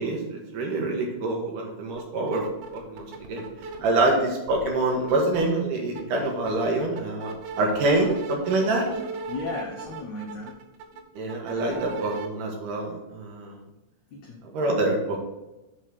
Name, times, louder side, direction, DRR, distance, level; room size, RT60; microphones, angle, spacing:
voice 1, 0.0-2.4 2.7-3.4 3.8-7.3 7.6-8.9 11.2-13.6 14.4-15.2, right 2 dB, 60° right, 0 dB, 2.7 m, -26 dB
sound 1, 1.9-2.0 2.3-4.1 4.5-5.4 5.8-12.3, right 4 dB, 85° right, 3.1 m, -37 dB
voice 2, 9.3-10.5 11.7-11.9 14.1-14.4, left 3 dB, 75° left, -2 dB, 1.6 m, -35 dB
7.3 x 4.3 x 6.6 m, 1.0 s
omnidirectional pair, 4.7 m